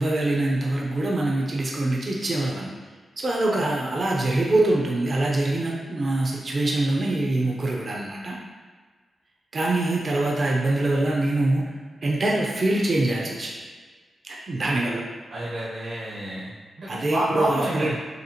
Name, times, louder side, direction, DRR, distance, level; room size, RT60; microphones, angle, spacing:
voice 1, 0.0-2.7 3.2-8.4 9.5-11.7 12.0-13.5 14.2-15.0 16.9-17.9, right 2 dB, 35° right, -3 dB, 0.6 m, -24 dB
voice 2, 15.3-16.5 16.8-17.9, right 1 dB, 55° right, -8 dB, 1.0 m, -28 dB
6.5 x 2.4 x 2.9 m, 1.5 s
wide cardioid pair, 135°, 0 cm